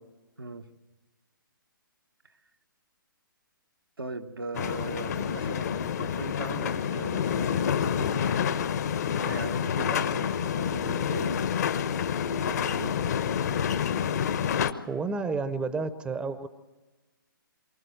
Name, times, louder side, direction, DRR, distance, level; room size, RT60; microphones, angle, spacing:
voice 1, 0.4-0.7 4.0-11.4 12.3-13.0, right 3 dB, 85° right, 1.3 m, -39 dB
sound 1, 4.5-14.7, left 8 dB, 50° left, 1.0 m, -28 dB
voice 2, 14.9-16.5, right 4 dB, 10° right, 0.7 m, -30 dB
24.0 x 14.5 x 7.8 m
figure-of-eight pair, 135°, 12 cm